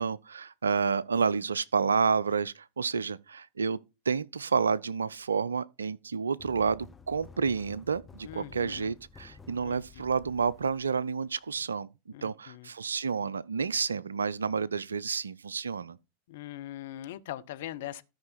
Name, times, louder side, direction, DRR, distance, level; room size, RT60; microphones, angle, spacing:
voice 1, 0.0-3.8 4.1-11.9 12.2-16.0, right 5 dB, 70° right, 0.4 m, -30 dB
sound 1, 6.4-11.6, left 5 dB, 15° left, 0.9 m, -53 dB
voice 2, 8.2-8.9 9.6-10.1 12.1-12.7 16.3-18.0, left 13 dB, 55° left, 0.7 m, -41 dB
13.0 x 5.6 x 4.2 m
figure-of-eight pair, 90°, 0 cm